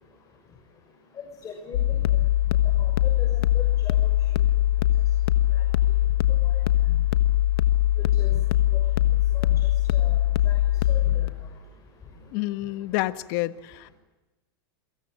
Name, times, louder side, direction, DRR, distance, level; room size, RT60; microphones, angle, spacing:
voice 1, 1.4-2.0 2.8-4.0 6.4-6.6 6.9-7.0 8.2-8.4 9.3-9.6 9.9-10.2 10.5-10.6 10.9-11.3, left 6 dB, 25° left, 1 dB, 6.1 m, -39 dB
sound 1, 1.7-11.3, left 13 dB, 80° left, 1.4 m, -21 dB
voice 2, 12.3-13.9, left 18 dB, 55° left, 12 dB, 1.3 m, -29 dB
28.5 x 24.5 x 6.4 m, 1.1 s
supercardioid pair, 135°, 13 cm